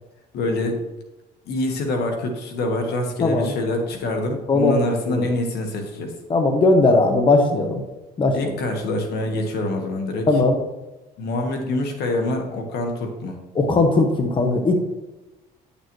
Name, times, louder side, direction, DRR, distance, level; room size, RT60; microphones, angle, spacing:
voice 1, 0.3-0.8 1.5-6.1 8.3-10.4 11.2-13.4, left 2 dB, 75° left, 3 dB, 1.6 m, -25 dB
voice 2, 3.2-3.5 4.5-5.2 6.3-7.8 8.2-8.3 10.3-10.6 13.5-14.8, left 2 dB, 30° left, 4 dB, 1.1 m, -18 dB
10.0 x 6.7 x 3.2 m, 1.0 s
cardioid pair, 110°, 17 cm